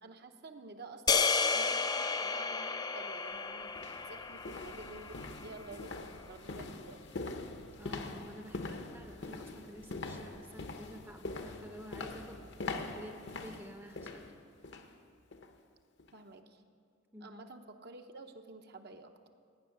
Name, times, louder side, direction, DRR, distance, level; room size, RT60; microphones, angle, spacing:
voice 1, 0.0-7.0 16.1-16.6 17.2-19.1, right 3 dB, 50° right, 5 dB, 0.8 m, -50 dB
sound 1, 1.1-5.4, left 5 dB, 20° left, 0.3 m, -32 dB
sound 2, 3.0-3.1 3.7-14.9 15.3-15.6 16.0-16.1, left 3 dB, 55° left, 0.9 m, -43 dB
voice 2, 7.8-12.4 12.9-14.3 17.1-17.5, equal, 10° right, 5 dB, 0.7 m, -50 dB
16.0 x 6.3 x 9.3 m, 2.3 s
head